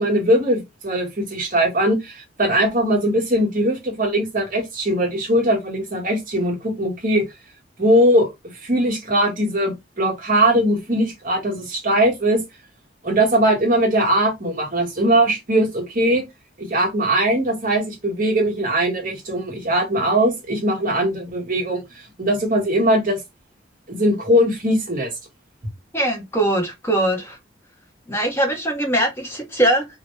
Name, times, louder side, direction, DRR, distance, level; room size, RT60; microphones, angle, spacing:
voice 1, 0.0-7.3 7.8-8.3 8.6-12.4 13.0-16.2 16.6-21.8 22.2-23.2 23.9-25.1, right 1 dB, 45° right, 1.2 m, -20 dB
voice 2, 25.9-27.4 28.1-29.9, right 1 dB, 15° left, 0.8 m, -21 dB
2.8 x 2.1 x 3.0 m
head